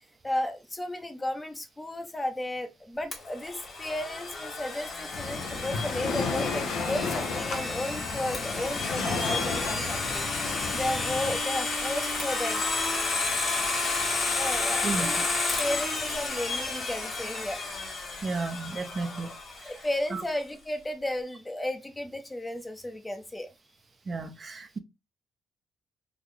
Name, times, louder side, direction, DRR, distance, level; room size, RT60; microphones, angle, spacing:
voice 1, 0.2-12.6 13.3-13.5 14.3-17.6 19.6-23.5, left 1 dB, 15° left, 0.7 m, -34 dB
Domestic sounds home sounds, 3.1-19.9, left 3 dB, 45° left, 1.5 m, -31 dB
Waves surf, 5.1-11.4, left 4 dB, 75° left, 0.8 m, -33 dB
voice 2, 18.2-19.3 19.6-19.7 20.1-20.2 24.1-24.8, right 3 dB, 35° right, 0.5 m, -33 dB
3.7 x 2.4 x 3.2 m
cardioid pair, 90°, 0 cm